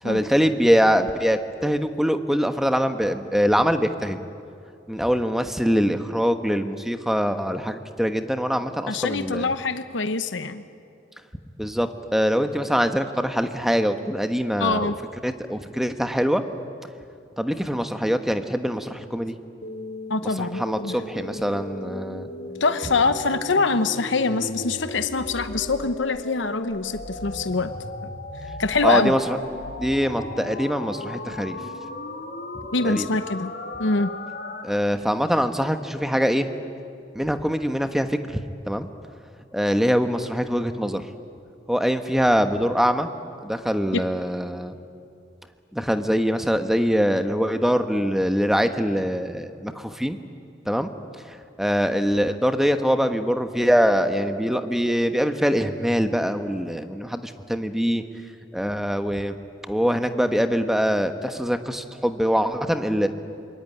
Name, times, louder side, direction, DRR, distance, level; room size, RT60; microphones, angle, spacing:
voice 1, 0.0-4.2 4.9-9.5 11.6-14.9 15.2-16.4 17.4-19.4 20.2-22.3 28.8-29.4 29.8-31.6 32.8-33.1 34.6-36.5 37.1-38.2 38.7-38.9 39.5-41.0 41.7-43.1 43.4-44.8 45.7-50.2 50.7-50.9 51.3-58.0 58.5-59.4 59.7-63.1, equal, ahead, 8 dB, 1.2 m, -23 dB
voice 2, 8.9-10.6 14.6-15.0 20.1-21.0 22.6-27.7 28.6-29.1 32.7-33.5 33.8-34.1 43.9-44.0, left 3 dB, 80° left, 10 dB, 1.0 m, -24 dB
sound 1, 19.6-34.6, left 1 dB, 55° left, 2.6 m, -36 dB
26.5 x 22.5 x 9.9 m, 2.6 s
head